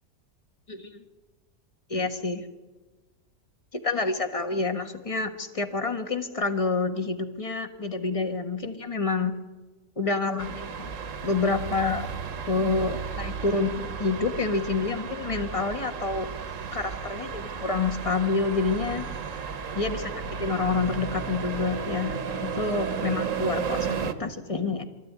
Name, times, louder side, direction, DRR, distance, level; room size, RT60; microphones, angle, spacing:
voice 1, 0.7-1.0 1.9-2.5 3.7-9.4 10.0-10.9 11.2-12.1 12.5-16.3 16.7-19.1 19.7-24.8, left 3 dB, 20° left, 7 dB, 1.4 m, -28 dB
sound 1, 10.4-24.1, right 6 dB, 55° right, 1.4 m, -33 dB
23.5 x 14.0 x 9.4 m, 1.2 s
omnidirectional pair, 1.7 m